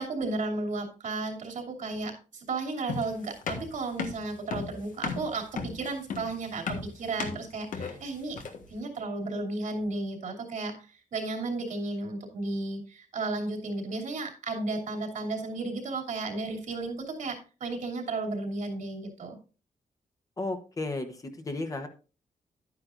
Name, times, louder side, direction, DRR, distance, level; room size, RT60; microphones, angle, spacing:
voice 1, 0.0-8.4 8.7-19.4, right 3 dB, 70° right, 2 dB, 2.8 m, -34 dB
sound 1, 2.9-8.7, left 5 dB, 80° left, 1.5 m, -35 dB
voice 2, 20.4-21.9, left 2 dB, 25° left, 6 dB, 1.0 m, -34 dB
11.5 x 9.5 x 2.5 m, 0.35 s
wide cardioid pair, 175°, 13 cm